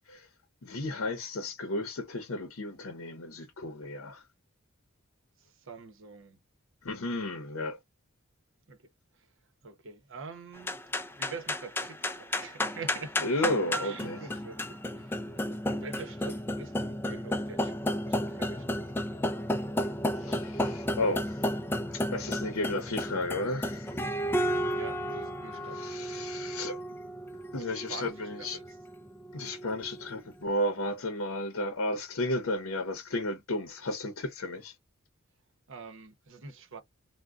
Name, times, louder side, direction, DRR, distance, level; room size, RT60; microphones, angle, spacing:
voice 1, 0.6-4.2 6.8-7.8 13.2-14.2 20.1-21.4 21.9-24.0 25.7-26.8 27.5-28.6 29.3-34.7, left 1 dB, 70° left, 0.7 m, -33 dB
voice 2, 5.4-6.4 8.7-8.8 9.1-9.3 9.6-10.8 11.2-13.3 13.8-18.8 24.7-25.8 27.5-28.7 35.7-36.8, right 4 dB, 65° right, 0.7 m, -45 dB
sound 1, 10.6-30.1, left 1 dB, 10° left, 0.3 m, -33 dB
3.6 x 2.1 x 2.3 m
head